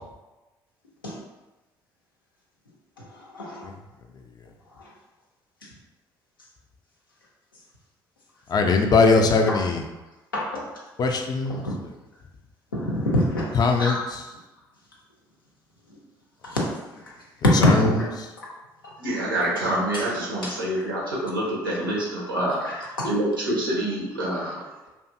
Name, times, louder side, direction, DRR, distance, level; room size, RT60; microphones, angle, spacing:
voice 1, 3.0-3.7 4.8-4.9 5.6-5.7 9.5-9.6 10.3-10.6 11.5-11.7 12.7-14.0 16.4-16.6 17.4-18.5 18.8-18.9 19.9-20.0 20.4-20.5 23.0-23.1, left 1 dB, 85° left, -4 dB, 0.5 m, -25 dB
voice 2, 8.5-9.8 11.0-11.6 13.5-14.0 17.6-17.9, left 4 dB, 35° left, 4 dB, 0.4 m, -20 dB
voice 3, 19.0-24.6, right 1 dB, 90° right, -6 dB, 0.7 m, -27 dB
2.6 x 2.5 x 2.5 m, 1.1 s
figure-of-eight pair, 50°, 11 cm